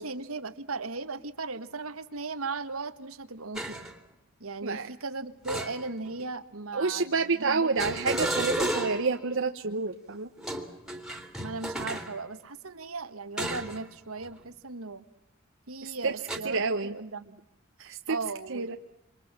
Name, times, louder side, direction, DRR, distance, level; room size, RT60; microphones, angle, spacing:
voice 1, 0.0-3.8 4.4-8.1 11.4-15.0 15.7-17.4 18.1-18.7, right 3 dB, 85° right, 10 dB, 1.7 m, -37 dB
sound 1, 3.5-3.9 5.4-6.2 7.8-9.2 10.4-12.1 13.4-13.8 14.2-14.4 16.3-16.4, right 1 dB, 5° right, 3.0 m, -32 dB
voice 2, 6.7-10.3 15.8-16.1 16.4-16.9 17.8-18.2 18.5-18.8, right 4 dB, 65° right, 6 dB, 1.1 m, -29 dB
28.0 x 25.5 x 7.5 m, 0.84 s
head